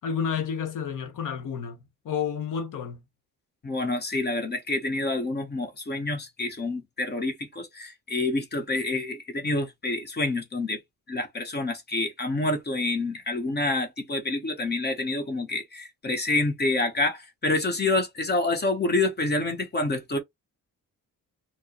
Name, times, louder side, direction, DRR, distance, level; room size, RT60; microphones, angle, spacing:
voice 1, 0.0-3.0, left 7 dB, 60° left, 0.9 m, -30 dB
voice 2, 3.6-10.8 11.1-20.2, left 2 dB, 30° left, 0.9 m, -27 dB
4.4 x 2.0 x 2.9 m
wide cardioid pair, 175°, 35 cm